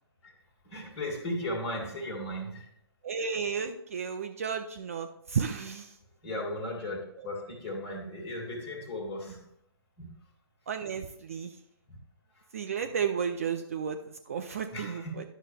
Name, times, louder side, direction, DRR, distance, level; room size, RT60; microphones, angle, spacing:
voice 1, 0.6-2.7 6.2-9.4 10.0-10.1 11.9-12.0 12.4-12.5 14.7-15.3, left 1 dB, 25° left, -1 dB, 1.8 m, -36 dB
voice 2, 3.0-5.9 10.7-11.6 12.5-15.2, right 6 dB, 35° right, 6 dB, 0.4 m, -33 dB
10.5 x 6.5 x 3.3 m, 0.74 s
figure-of-eight pair, 140°, 14 cm